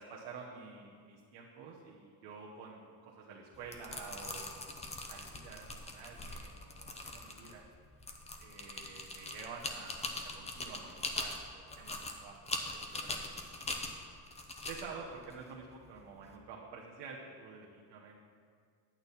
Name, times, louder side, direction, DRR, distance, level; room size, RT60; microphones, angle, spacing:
voice 1, 0.0-4.7 5.1-7.6 8.4-13.4 14.7-18.2, right 5 dB, 85° right, -3 dB, 1.2 m, -49 dB
sound 1, 3.5-16.3, left 2 dB, 15° left, 0.7 m, -42 dB
10.0 x 8.8 x 4.2 m, 2.1 s
cardioid pair, 150°, 41 cm